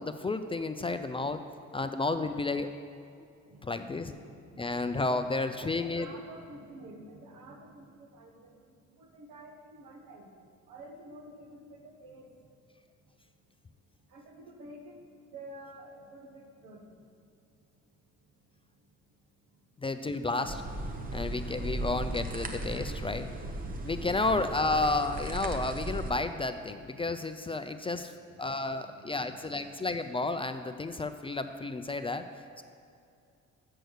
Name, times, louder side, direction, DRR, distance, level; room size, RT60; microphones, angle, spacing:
voice 1, 0.0-1.4 1.7-2.7 3.1-3.3 3.6-4.1 4.6-6.1 19.8-20.6 21.1-23.3 23.8-28.1 28.4-32.3 32.6-32.7, left 3 dB, 20° left, 8 dB, 0.3 m, -32 dB
voice 2, 3.4-8.5 9.0-10.3 10.7-12.3 14.1-15.0 15.3-16.8 28.1-28.2 28.5-29.9 32.5-32.6, right 1 dB, 85° right, 2 dB, 1.2 m, -50 dB
sound 1, 20.5-26.1, right 1 dB, 30° right, 0.8 m, -36 dB
6.7 x 6.3 x 6.4 m, 2.4 s
cardioid pair, 90°, 30 cm